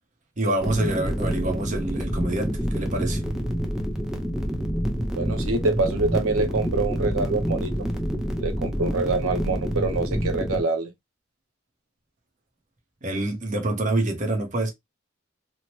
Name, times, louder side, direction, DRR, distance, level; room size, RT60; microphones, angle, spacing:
voice 1, 0.4-3.2 13.0-14.7, right 2 dB, 40° right, 0.8 m, -26 dB
sound 1, 0.6-10.6, equal, 5° right, 0.5 m, -27 dB
voice 2, 5.2-7.7 8.4-10.9, right 3 dB, 85° right, 0.6 m, -25 dB
3.0 x 2.1 x 2.9 m
head